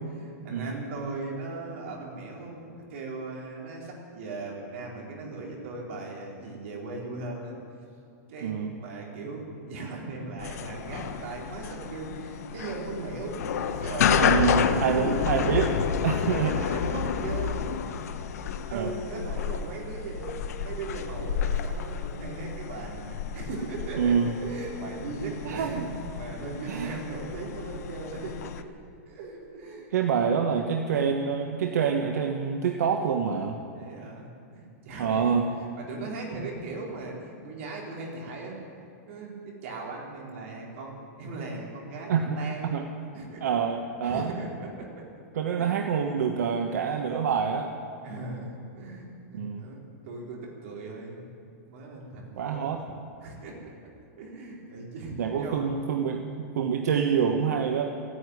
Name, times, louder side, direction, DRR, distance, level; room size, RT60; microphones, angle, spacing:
voice 1, 0.0-7.6 8.3-15.8 16.3-17.8 18.7-28.7 29.1-30.0 33.7-38.6 39.1-42.8 43.1-43.4 44.0-45.1 45.5-45.7 48.0-52.8 53.2-53.9 54.2-55.7, right 3 dB, 50° right, -2 dB, 4.1 m, -38 dB
sound 1, 10.4-28.6, left 7 dB, 70° left, 1.0 m, -30 dB
voice 2, 14.2-15.7 16.0-16.5 18.7-18.9 24.0-24.4 25.4-25.9 26.7-26.9 29.9-33.6 35.0-35.5 42.1-42.4 42.7-42.8 43.4-44.3 45.3-47.7 49.3-49.6 52.4-52.8 55.2-57.9, right 7 dB, 80° right, 3 dB, 1.3 m, -26 dB
14.5 x 9.9 x 9.7 m, 2.5 s
supercardioid pair, 170°, 9 cm